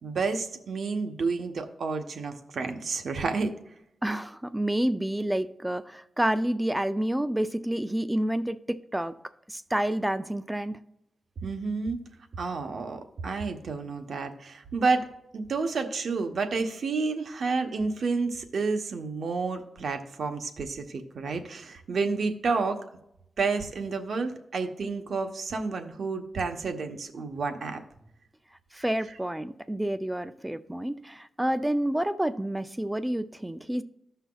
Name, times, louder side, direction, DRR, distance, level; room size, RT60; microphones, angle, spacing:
voice 1, 0.0-3.5 11.4-12.0 12.4-15.1 15.3-22.8 23.4-27.8, right 4 dB, 70° right, 5 dB, 0.9 m, -30 dB
voice 2, 4.0-9.1 9.5-10.8 28.7-33.8, right 1 dB, 10° right, 11 dB, 0.3 m, -29 dB
15.0 x 5.7 x 2.3 m, 0.82 s
wide cardioid pair, 110°, 0 cm